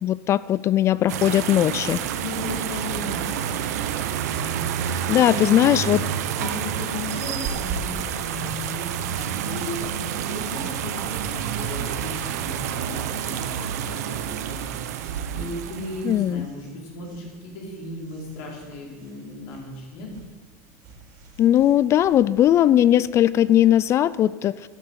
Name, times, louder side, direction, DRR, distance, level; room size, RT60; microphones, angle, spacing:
voice 1, 0.0-2.0 5.1-6.0 16.0-16.5 21.4-24.7, left 12 dB, 35° left, 19 dB, 0.3 m, -19 dB
sound 1, 1.1-16.3, right 9 dB, 85° right, 1.1 m, -29 dB
voice 2, 2.2-3.8 5.2-5.8 6.4-20.1, left 2 dB, 65° left, -1 dB, 4.4 m, -36 dB
sound 2, 7.4-23.8, right 4 dB, 55° right, 3.7 m, -44 dB
12.0 x 10.5 x 8.0 m, 1.4 s
supercardioid pair, 135°, 9 cm